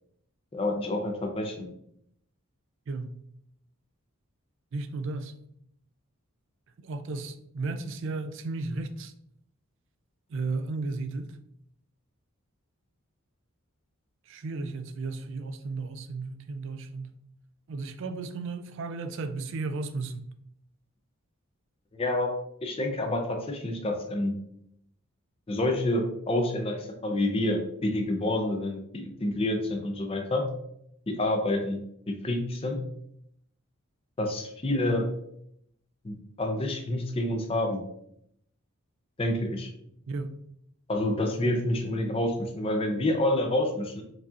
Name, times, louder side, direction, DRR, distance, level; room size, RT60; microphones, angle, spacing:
voice 1, 0.5-1.7 21.9-22.3 22.6-24.3 25.5-30.5 31.1-32.8 34.2-35.1 36.0-37.8 39.2-39.7 40.9-44.0, left 1 dB, 25° left, 0.5 m, -28 dB
voice 2, 4.7-5.3 6.8-9.1 10.3-11.3 14.3-17.2 17.7-20.2 40.1-40.3, right 3 dB, 60° right, 0.4 m, -34 dB
4.7 x 2.8 x 2.4 m
head